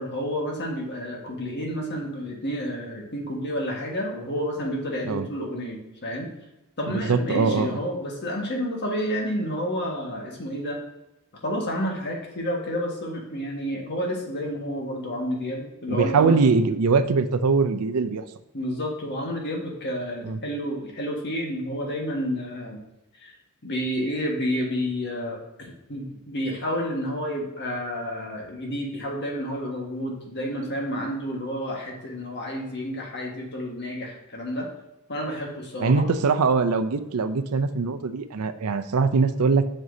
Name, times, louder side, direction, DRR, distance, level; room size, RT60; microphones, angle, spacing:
voice 1, 0.0-6.3 6.8-10.8 11.4-16.4 18.5-22.8 23.2-23.3 23.6-34.7 35.1-36.1, equal, 50° left, 0 dB, 1.6 m, -30 dB
voice 2, 6.9-7.8 15.9-18.3 20.2-20.4 35.8-39.8, right 4 dB, 80° right, 10 dB, 0.5 m, -22 dB
7.8 x 6.3 x 2.7 m, 0.93 s
head